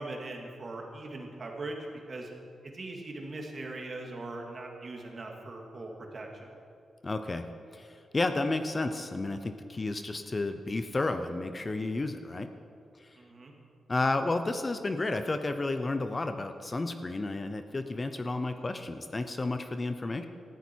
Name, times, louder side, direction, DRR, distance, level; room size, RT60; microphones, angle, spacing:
voice 1, 0.0-2.3 2.6-6.5 13.1-13.5, right 2 dB, 35° right, 1 dB, 2.2 m, -40 dB
voice 2, 7.0-7.5 7.7-12.5 13.0-13.1 13.9-20.3, left 2 dB, 25° left, 8 dB, 0.7 m, -32 dB
18.5 x 14.0 x 4.6 m, 2.4 s
wide cardioid pair, 155°, 0 cm